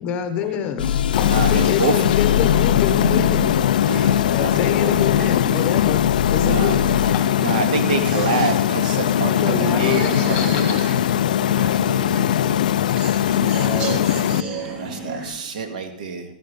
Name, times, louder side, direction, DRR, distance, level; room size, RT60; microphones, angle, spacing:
voice 1, 0.0-0.9 1.2-3.4 4.3-7.3 9.3-10.8, left 8 dB, 20° left, 0.9 m, -26 dB
sound 1, 0.8-7.1, left 9 dB, 80° left, 0.7 m, -23 dB
sound 2, 1.1-14.4, left 12 dB, 60° left, 0.4 m, -20 dB
voice 2, 1.2-1.9 3.8-4.9 6.4-6.7 7.4-11.0 11.7-12.7 14.7-16.2, right 5 dB, 60° right, 2.1 m, -27 dB
sound 3, 2.3-15.3, right 1 dB, 35° right, 5.0 m, -32 dB
voice 3, 8.1-8.5 9.0-9.1 9.8-11.1 12.2-12.3 12.9-15.2, right 6 dB, 15° right, 0.7 m, -34 dB
13.5 x 11.0 x 5.3 m
hypercardioid pair, 170°, 5 cm